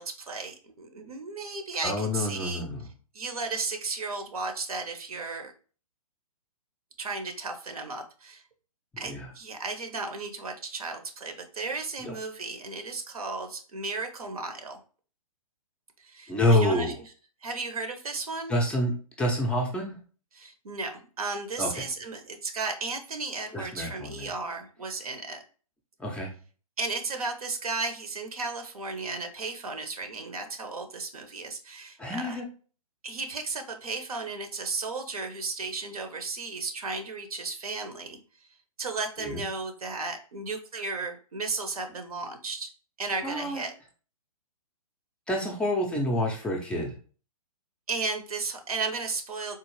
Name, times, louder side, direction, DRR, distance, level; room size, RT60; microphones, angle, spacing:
voice 1, 0.0-2.6 3.1-5.5 7.0-8.4 9.0-14.8 16.0-16.9 17.4-18.5 20.3-25.4 26.8-32.4 33.0-38.2 38.8-42.7 43.0-43.7 47.9-49.6, right 3 dB, 75° right, 6 dB, 0.8 m, -34 dB
voice 2, 1.8-2.9 9.0-9.3 12.0-12.1 16.3-17.0 18.5-20.0 21.6-21.9 23.5-24.3 26.0-26.3 32.0-32.4 39.2-39.4 43.2-43.6 45.3-46.9, left 1 dB, 5° left, 0 dB, 0.4 m, -28 dB
3.7 x 2.4 x 3.0 m, 0.39 s
hypercardioid pair, 130°, 19 cm